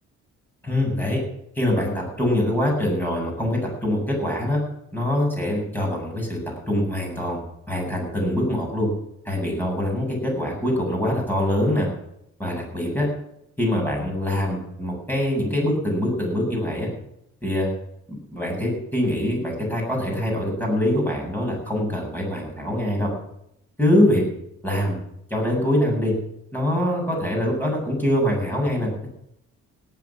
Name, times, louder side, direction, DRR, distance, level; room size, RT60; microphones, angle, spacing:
voice 1, 0.6-1.2 1.5-4.6 4.9-6.4 6.7-7.4 7.7-8.9 9.2-11.9 12.4-13.1 13.6-16.9 17.4-17.7 18.3-23.1 23.8-24.2 24.6-25.0 25.3-26.1 26.5-28.9, left 1 dB, 5° left, -1 dB, 7.9 m, -24 dB
17.5 x 8.9 x 7.5 m, 0.75 s
cardioid pair, 90°, 30 cm